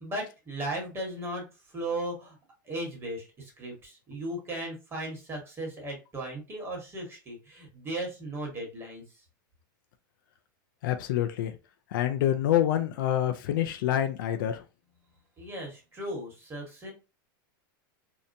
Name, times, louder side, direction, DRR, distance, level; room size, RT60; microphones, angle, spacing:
voice 1, 0.0-2.4 2.6-9.2 15.4-16.9, right 1 dB, 20° right, 1.3 m, -36 dB
voice 2, 10.8-11.6 11.9-14.6, left 11 dB, 70° left, 0.5 m, -27 dB
2.8 x 2.1 x 2.6 m
hypercardioid pair, 120°, 12 cm